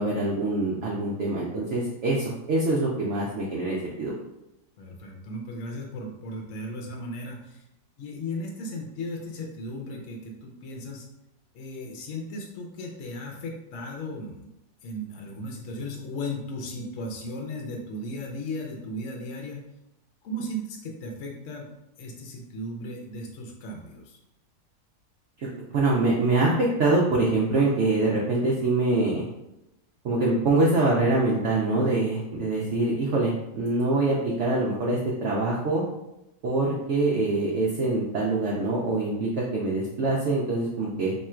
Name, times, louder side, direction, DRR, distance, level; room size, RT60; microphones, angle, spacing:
voice 1, 0.0-4.1 25.4-29.2 30.0-35.8 36.4-41.1, right 2 dB, 80° right, -4 dB, 0.6 m, -24 dB
voice 2, 4.8-7.6 8.0-11.1 11.5-14.5 14.8-19.7 20.2-21.7 22.0-24.2, left 1 dB, 60° left, 0 dB, 0.8 m, -36 dB
2.9 x 2.4 x 4.2 m, 0.89 s
omnidirectional pair, 1.9 m